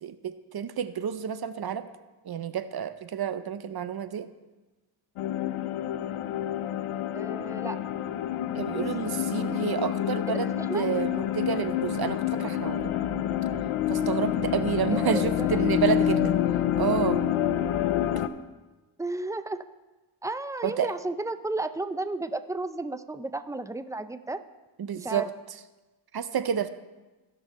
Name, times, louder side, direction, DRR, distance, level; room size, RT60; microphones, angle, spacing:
voice 1, 0.0-1.9 2.2-4.3 8.5-12.9 13.9-16.3 16.8-17.2 20.6-20.9 24.8-25.3 26.1-26.7, right 8 dB, 50° right, 12 dB, 0.7 m, -30 dB
sound 1, 5.2-18.3, left 11 dB, 85° left, 0.6 m, -28 dB
voice 2, 7.1-7.8 8.7-9.0 10.3-10.9 14.9-15.8 19.0-19.6 20.2-24.4 25.0-25.3, right 2 dB, 5° right, 11 dB, 0.3 m, -33 dB
16.5 x 5.5 x 4.1 m, 1.2 s
cardioid pair, 80°, 49 cm